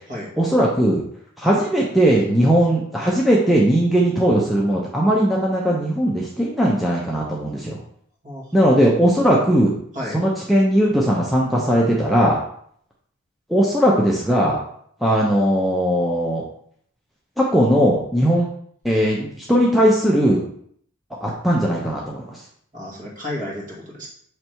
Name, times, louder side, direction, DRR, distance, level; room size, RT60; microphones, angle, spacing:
voice 1, 0.4-1.0 1.4-7.8 8.5-9.7 10.1-12.4 13.5-14.6 15.0-16.4 17.4-18.5 18.8-20.4 21.2-22.4, equal, ahead, -4 dB, 0.7 m, -18 dB
voice 2, 8.2-8.7 9.9-10.2 22.7-24.1, left 1 dB, 35° right, -3 dB, 1.8 m, -32 dB
6.6 x 3.3 x 4.5 m, 0.64 s
head